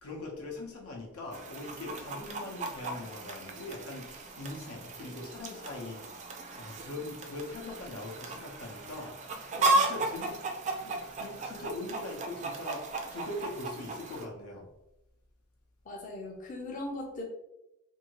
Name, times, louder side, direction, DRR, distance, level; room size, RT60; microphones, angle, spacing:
voice 1, 0.0-9.1 9.5-10.4 10.8-14.7, left 2 dB, 85° left, 0 dB, 0.8 m, -41 dB
Chicken rooster, 1.3-14.3, right 2 dB, 35° right, 0.4 m, -35 dB
voice 2, 15.9-17.2, left 1 dB, 40° left, -1 dB, 0.5 m, -39 dB
2.7 x 2.7 x 2.9 m, 0.90 s
head